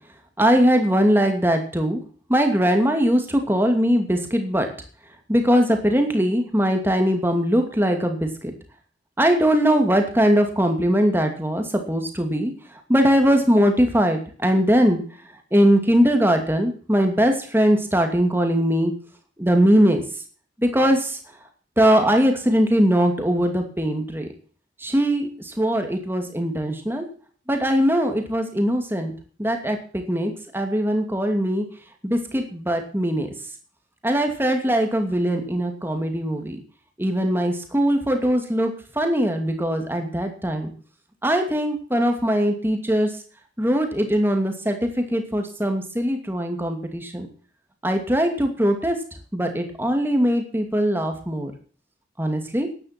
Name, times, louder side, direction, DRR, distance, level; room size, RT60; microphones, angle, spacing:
voice 1, 0.4-2.0 2.3-4.7 5.3-8.5 9.2-12.5 12.9-15.0 15.5-18.9 19.4-20.0 20.6-21.2 21.8-24.3 24.8-27.0 27.5-29.1 29.4-31.6 32.0-33.3 34.0-36.6 37.0-38.7 39.0-40.7 41.2-43.1 43.6-47.3 47.8-49.0 49.3-51.5 52.2-52.7, equal, 10° right, 5 dB, 2.6 m, -21 dB
14.0 x 11.0 x 6.1 m, 0.43 s
head